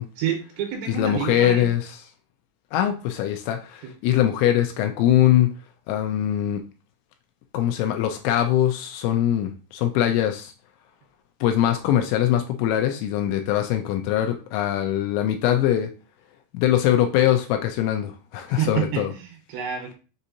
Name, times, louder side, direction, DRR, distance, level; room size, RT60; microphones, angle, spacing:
voice 1, 0.2-1.7 3.8-3.9 18.5-20.0, right 9 dB, 80° right, 2 dB, 2.9 m, -28 dB
voice 2, 0.9-1.9 2.7-5.5 5.9-6.6 7.5-10.5 11.4-15.9 16.5-19.1, left 11 dB, 85° left, 5 dB, 2.8 m, -22 dB
7.1 x 2.8 x 2.6 m, 0.34 s
omnidirectional pair, 5.6 m